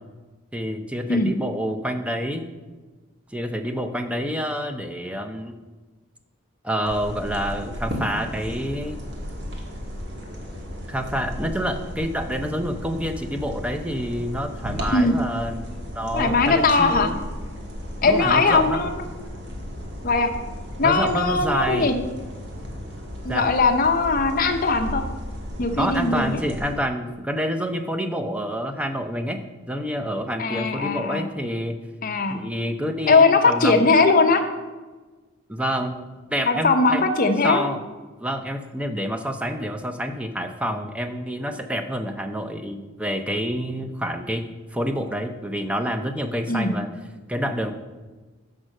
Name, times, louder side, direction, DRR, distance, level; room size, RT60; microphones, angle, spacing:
voice 1, 0.5-2.4 3.3-5.6 6.6-9.0 10.9-17.1 18.0-18.8 20.8-21.9 23.3-23.4 25.8-29.4 29.7-31.8 32.3-34.0 35.5-36.0 36.3-37.0 37.4-37.8 38.2-46.9 47.3-47.7, equal, 5° right, 7 dB, 0.5 m, -28 dB
sound 1, 6.8-26.7, equal, 60° right, 1.5 m, -35 dB
voice 2, 16.1-17.1 18.0-18.9 20.0-20.3 20.8-22.0 23.2-25.0 25.6-26.4 30.4-31.3 32.0-32.4 33.1-34.4 36.4-37.6 46.5-46.7, left 3 dB, 45° left, 5 dB, 0.7 m, -20 dB
6.2 x 5.4 x 6.3 m, 1.3 s
head